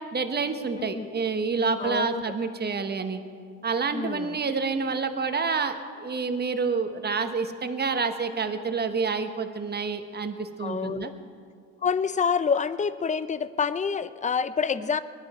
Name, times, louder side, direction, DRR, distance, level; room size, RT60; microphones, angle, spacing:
voice 1, 0.1-3.2 3.6-11.1, right 4 dB, 25° right, 8 dB, 1.2 m, -28 dB
voice 2, 0.7-1.1 1.8-2.2 3.9-4.4 10.6-11.1 11.8-15.0, left 6 dB, 20° left, 15 dB, 0.6 m, -27 dB
20.0 x 12.0 x 4.3 m, 2.2 s
supercardioid pair, 80°, 37 cm